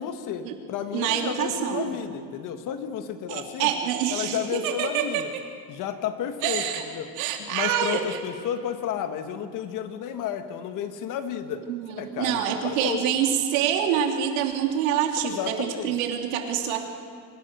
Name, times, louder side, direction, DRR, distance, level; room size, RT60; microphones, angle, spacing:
voice 1, 0.0-3.7 4.1-5.3 5.7-7.1 7.4-11.7 12.0-13.0 15.2-16.0, left 9 dB, 50° left, 8 dB, 1.6 m, -32 dB
voice 2, 0.9-1.9 3.3-5.4 6.4-6.8 7.2-8.2 11.7-16.9, right 9 dB, 90° right, 3 dB, 3.0 m, -26 dB
26.0 x 16.0 x 6.8 m, 2.2 s
cardioid pair, 145°, 41 cm